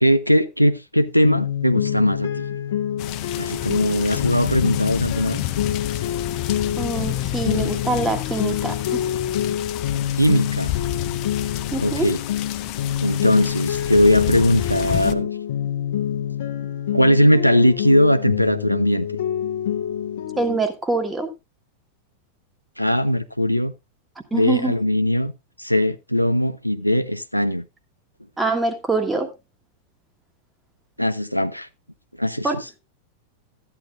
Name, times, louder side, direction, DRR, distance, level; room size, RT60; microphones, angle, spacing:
voice 1, 0.0-2.3 3.4-5.4 10.2-10.7 11.8-12.2 13.0-15.3 16.9-19.1 22.8-23.7 24.3-25.3 25.6-27.6 31.0-31.7 32.2-32.5, equal, 90° left, 0.5 m, -19 dB
sound 1, 1.2-20.6, left 10 dB, 60° left, 1.1 m, -26 dB
sound 2, 3.0-15.1, left 16 dB, 40° left, 0.6 m, -31 dB
voice 2, 6.8-9.0 11.7-12.1 20.4-21.3 24.3-24.8 28.4-29.3 32.4-32.6, right 3 dB, 10° right, 1.5 m, -24 dB
13.5 x 9.8 x 2.5 m
figure-of-eight pair, 90°, 0 cm